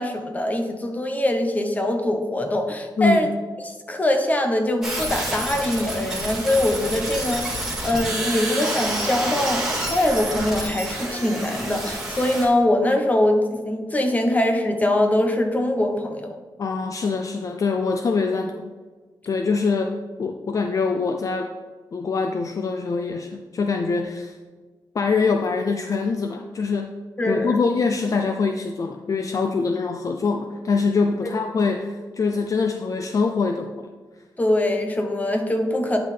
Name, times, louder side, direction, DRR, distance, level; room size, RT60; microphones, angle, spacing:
voice 1, 0.0-3.3 3.6-16.3 27.2-27.6 34.4-36.0, left 1 dB, 20° left, 4 dB, 0.9 m, -23 dB
sound 1, 4.8-12.5, right 1 dB, 5° right, 1.7 m, -28 dB
voice 2, 16.6-18.7 19.3-21.5 21.9-24.4 24.9-26.9 27.2-33.9, left 4 dB, 45° left, 5 dB, 0.4 m, -24 dB
9.7 x 5.6 x 3.3 m, 1.4 s
wide cardioid pair, 145°, 8 cm